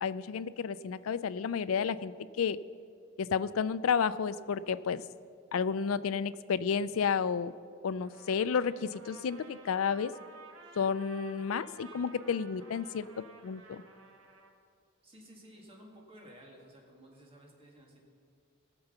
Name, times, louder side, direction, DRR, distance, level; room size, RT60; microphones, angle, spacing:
voice 1, 0.0-2.6 3.2-5.0 5.5-7.5 7.8-10.1 10.8-13.8, left 6 dB, 75° left, 15 dB, 0.4 m, -31 dB
Trumpet, 8.0-14.5, right 3 dB, 80° right, 1.4 m, -54 dB
voice 2, 15.0-18.0, equal, 25° right, -1 dB, 2.1 m, -54 dB
18.5 x 6.9 x 5.6 m, 2.2 s
head